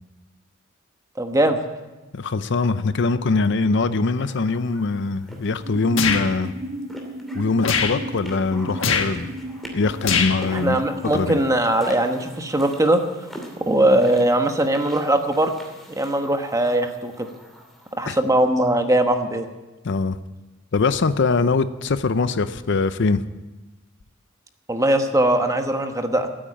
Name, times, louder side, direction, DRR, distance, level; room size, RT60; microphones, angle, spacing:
voice 1, 1.2-1.6 10.5-13.0 13.7-15.5 15.9-17.3 17.9-19.5 24.7-26.3, right 1 dB, 15° right, 6 dB, 1.2 m, -20 dB
voice 2, 2.1-6.5 7.3-9.4 9.7-10.8 11.1-11.4 18.1-18.2 19.8-20.2 20.7-23.2, left 4 dB, 65° left, 13 dB, 0.6 m, -22 dB
sound 1, 4.2-18.2, equal, ahead, 2.6 m, -44 dB
sound 2, 5.6-13.0, right 1 dB, 65° right, 1.5 m, -36 dB
sound 3, 6.0-6.3 7.6-8.0 8.8-9.1 10.0-10.4, left 6 dB, 80° left, 1.3 m, -21 dB
14.5 x 8.8 x 8.7 m, 1.1 s
head